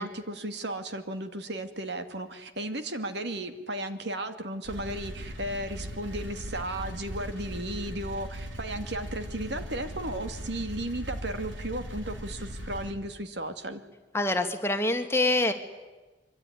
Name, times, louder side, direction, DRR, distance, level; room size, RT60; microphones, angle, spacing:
voice 1, 0.0-13.8, right 1 dB, 65° right, 8 dB, 2.3 m, -35 dB
sound 1, 4.6-12.9, equal, 90° right, 4.6 m, -39 dB
voice 2, 14.1-15.5, left 2 dB, 15° left, 6 dB, 2.0 m, -25 dB
25.0 x 24.0 x 9.9 m, 1.2 s
head